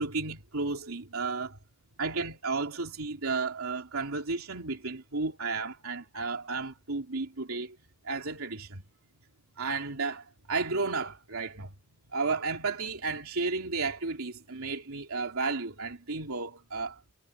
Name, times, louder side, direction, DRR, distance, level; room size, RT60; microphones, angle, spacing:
voice 1, 0.0-1.6 2.0-7.8 8.0-8.8 9.6-11.7 12.1-17.0, right 4 dB, 85° right, 3.0 m, -33 dB
head